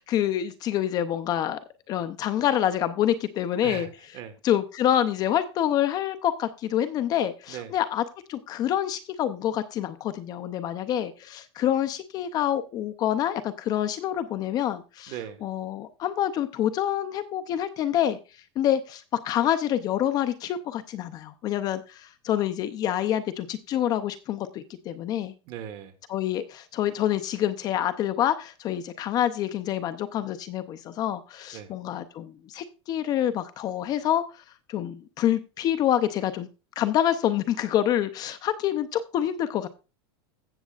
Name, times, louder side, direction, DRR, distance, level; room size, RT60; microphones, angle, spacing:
voice 1, 0.0-1.6 1.9-3.9 4.4-8.0 8.3-15.2 15.4-18.2 18.6-25.3 26.1-34.4 34.7-36.5 36.8-39.7, left 11 dB, 25° left, 11 dB, 0.5 m, -27 dB
voice 2, 3.6-4.3 7.5-7.7 15.1-15.4 25.5-25.9 31.5-31.7, right 9 dB, 40° right, 9 dB, 1.4 m, -38 dB
15.5 x 7.3 x 2.4 m, 0.31 s
supercardioid pair, 160°, 14 cm